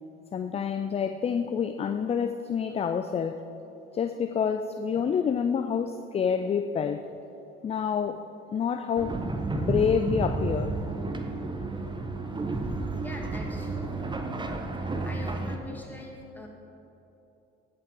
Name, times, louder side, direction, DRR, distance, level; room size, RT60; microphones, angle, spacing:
voice 1, 0.3-3.4 3.9-7.0 7.6-8.3 8.5-9.2 9.5-10.8, left 7 dB, 20° left, 9 dB, 0.3 m, -28 dB
sound 1, 9.0-15.6, right 2 dB, 15° right, 0.8 m, -31 dB
voice 2, 13.0-14.3 14.7-16.5, left 1 dB, 5° left, -1 dB, 2.0 m, -43 dB
15.5 x 5.6 x 3.8 m, 3.0 s
hypercardioid pair, 55°, 30 cm